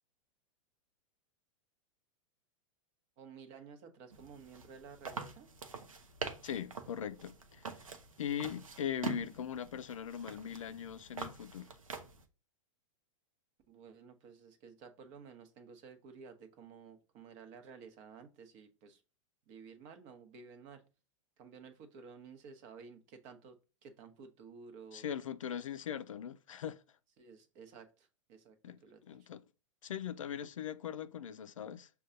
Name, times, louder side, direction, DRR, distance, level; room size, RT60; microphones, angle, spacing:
voice 1, 3.2-5.5 13.7-19.0 19.5-20.8 21.4-25.1 27.2-28.6 28.8-29.3, right 5 dB, 45° right, 0.9 m, -53 dB
sound 1, 4.1-12.2, right 5 dB, 85° right, 0.6 m, -45 dB
voice 2, 6.4-7.9 8.2-11.7 24.9-26.8 28.6-29.4 29.8-31.9, left 9 dB, 80° left, 0.4 m, -40 dB
6.3 x 2.3 x 2.5 m
hypercardioid pair, 100°, 17 cm